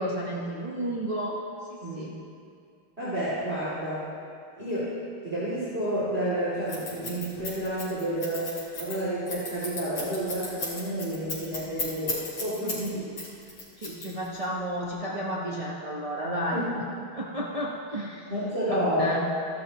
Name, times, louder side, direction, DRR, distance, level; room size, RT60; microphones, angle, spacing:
voice 1, 0.0-1.4 1.9-2.1 12.6-12.8 13.8-16.6 17.1-18.3 18.7-19.2, equal, 60° right, -5 dB, 0.3 m, -32 dB
voice 2, 1.8-2.1 3.0-4.1 4.6-4.9 5.2-13.1 16.5-16.7 18.3-19.2, right 1 dB, 30° right, -11 dB, 2.9 m, -30 dB
Scissors, 6.7-12.9 13.2-14.4, left 3 dB, 80° left, 4.1 m, -34 dB
16.5 x 12.0 x 3.0 m, 2.3 s
omnidirectional pair, 2.4 m